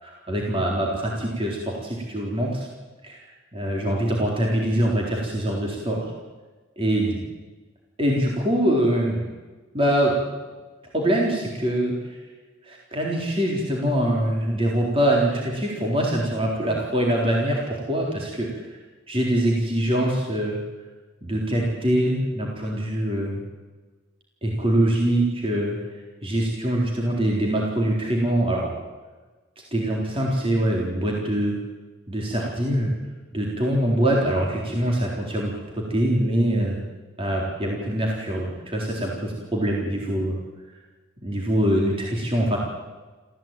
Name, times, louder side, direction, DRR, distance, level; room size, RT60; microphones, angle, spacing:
voice 1, 0.0-2.7 3.0-3.2 3.5-6.1 6.8-7.2 8.0-9.3 9.7-10.2 10.9-12.2 12.6-18.7 19.1-20.6 21.2-23.4 24.4-25.8 26.2-28.7 29.7-31.6 32.1-32.9 33.3-36.8 37.2-40.4 41.2-42.6, right 1 dB, 30° right, -2 dB, 4.0 m, -24 dB
26.5 x 16.0 x 9.2 m, 1.3 s
head